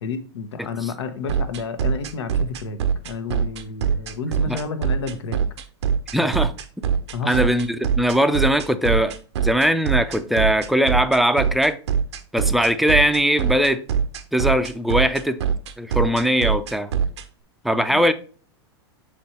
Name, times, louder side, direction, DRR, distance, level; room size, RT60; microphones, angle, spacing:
voice 1, 0.0-2.8 3.0-5.4 6.1-6.3 7.1-7.5 17.9-18.1, left 4 dB, 85° left, 1.0 m, -30 dB
voice 2, 0.6-0.9 4.5-4.6 6.1-6.5 7.2-11.8 12.3-13.8 14.3-15.4 15.8-16.9 17.6-18.1, equal, ahead, 0.4 m, -20 dB
sound 1, 1.3-17.2, right 7 dB, 85° right, 0.7 m, -22 dB
7.3 x 3.3 x 4.3 m
hypercardioid pair, 130°, 14 cm